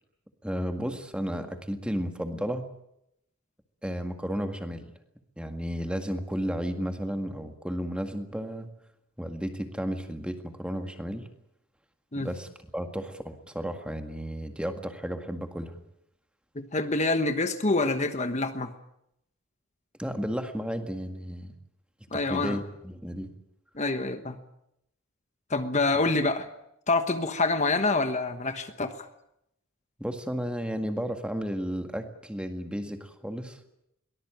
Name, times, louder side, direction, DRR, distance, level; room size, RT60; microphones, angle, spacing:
voice 1, 0.4-2.7 3.8-4.9 5.4-8.7 9.2-11.3 12.2-15.8 20.0-21.5 22.1-23.3 30.0-33.6, equal, 5° right, 6 dB, 1.9 m, -33 dB
voice 2, 16.5-18.7 22.1-22.6 23.7-24.4 25.5-26.5 26.9-29.1, left 3 dB, 35° left, 8 dB, 1.3 m, -26 dB
23.0 x 19.5 x 8.9 m, 0.79 s
head